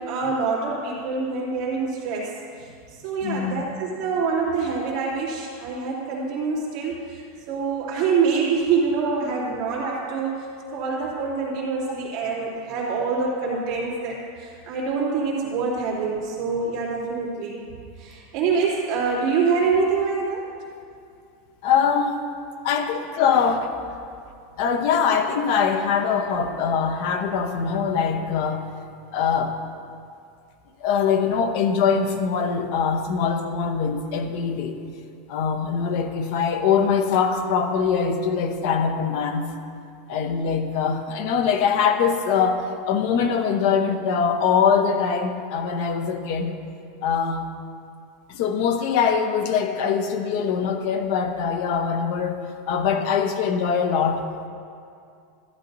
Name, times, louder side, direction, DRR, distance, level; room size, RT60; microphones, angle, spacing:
voice 1, 0.0-2.3 2.6-2.7 3.0-17.6 18.0-20.4, right 5 dB, 40° right, -7 dB, 2.6 m, -25 dB
voice 2, 3.2-3.6 21.6-22.2 22.6-23.7 24.6-28.6 29.1-29.6 30.8-34.8 35.3-39.4 40.1-46.6 47.0-47.4 48.3-54.2, left 6 dB, 45° left, 6 dB, 0.8 m, -23 dB
14.0 x 11.0 x 2.7 m, 2.4 s
supercardioid pair, 180°, 0 cm